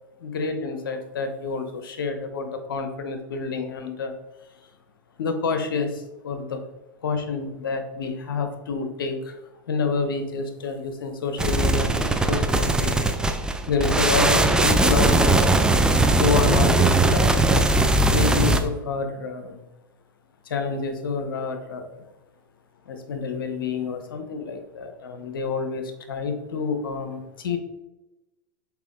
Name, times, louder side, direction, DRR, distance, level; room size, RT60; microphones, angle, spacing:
voice 1, 0.2-4.1 5.2-6.6 7.0-9.4 9.7-13.1 13.7-15.5 16.2-17.4 18.1-19.6 20.5-22.0 22.9-27.6, left 4 dB, 85° left, 7 dB, 1.0 m, -28 dB
sound 1, 11.4-18.6, right 2 dB, 5° right, 0.5 m, -19 dB
5.9 x 4.6 x 3.6 m, 1.0 s
hypercardioid pair, 105°, 11 cm